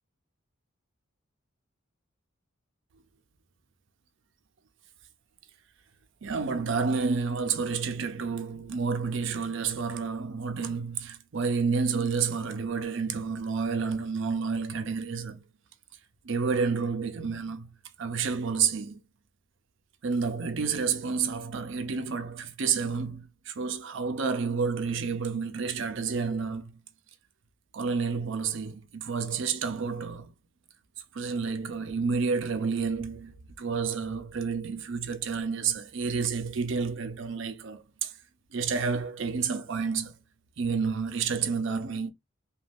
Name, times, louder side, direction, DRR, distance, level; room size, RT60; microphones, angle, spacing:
voice 1, 6.2-15.4 16.2-17.7 18.0-19.0 20.0-26.7 27.7-30.3 31.1-38.1 38.5-40.1 40.6-42.1, right 5 dB, 65° right, 0.5 m, -30 dB
2.5 x 2.3 x 3.4 m
head